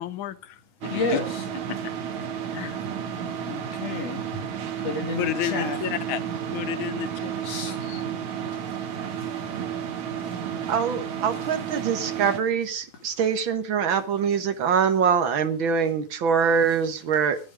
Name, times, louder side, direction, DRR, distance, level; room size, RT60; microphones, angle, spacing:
voice 1, 0.0-1.2 2.5-2.8 5.2-6.2 6.5-7.3 7.7-8.0, left 11 dB, 80° left, 1.1 m, -31 dB
sound 1, 0.8-12.4, right 8 dB, 75° right, 2.8 m, -32 dB
voice 2, 0.9-1.4 3.5-4.2 4.8-5.8 7.4-7.8 10.3-10.4, left 3 dB, 60° left, 3.7 m, -30 dB
voice 3, 10.7-17.4, right 6 dB, 50° right, 1.7 m, -24 dB
13.5 x 12.5 x 5.0 m
omnidirectional pair, 3.3 m